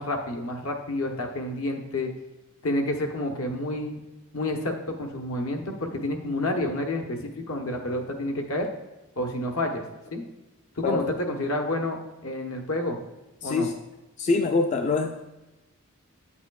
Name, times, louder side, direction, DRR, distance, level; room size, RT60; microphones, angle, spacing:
voice 1, 0.0-2.1 2.6-4.0 4.3-8.7 9.2-9.8 10.1-10.2 10.8-13.0 13.4-13.7, left 1 dB, 75° left, 3 dB, 1.0 m, -29 dB
voice 2, 13.4-13.7 14.2-15.4, left 3 dB, 35° left, 5 dB, 0.3 m, -25 dB
8.3 x 7.1 x 2.3 m, 1.1 s
head